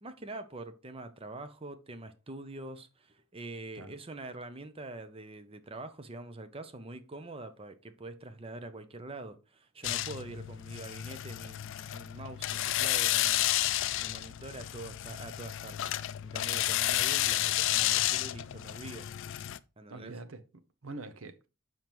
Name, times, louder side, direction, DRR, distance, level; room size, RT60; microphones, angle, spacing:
voice 1, 0.0-13.7 14.0-15.9 16.2-19.1 19.8-20.1, right 2 dB, 25° right, 0.7 m, -45 dB
sound 1, 9.8-19.6, left 14 dB, 60° left, 0.4 m, -31 dB
voice 2, 19.9-21.5, right 2 dB, 70° right, 0.8 m, -45 dB
7.1 x 5.9 x 3.0 m
head